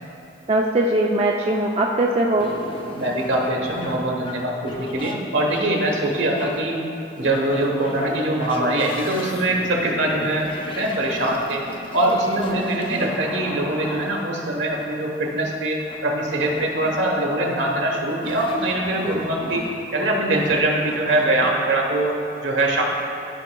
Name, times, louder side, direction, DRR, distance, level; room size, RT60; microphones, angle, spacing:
voice 1, 0.5-2.5 12.8-13.1 19.0-19.1, right 1 dB, 35° right, -1 dB, 0.4 m, -21 dB
sound 1, 2.4-21.5, left 1 dB, 25° left, 0.5 m, -36 dB
voice 2, 3.0-6.8 7.2-11.6 11.9-19.6 19.9-22.2 22.4-22.8, right 1 dB, 70° right, 0 dB, 1.1 m, -23 dB
13.5 x 5.1 x 2.3 m, 2.7 s
head